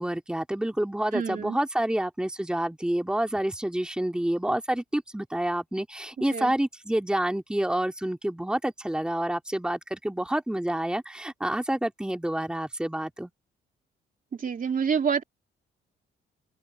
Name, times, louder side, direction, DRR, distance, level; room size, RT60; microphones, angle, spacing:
voice 1, 0.0-13.3, right 1 dB, 5° right, 2.2 m, -28 dB
voice 2, 1.1-1.6 6.3-6.5 14.4-15.2, right 6 dB, 45° right, 3.0 m, -27 dB
open air
cardioid pair, 90°, 20 cm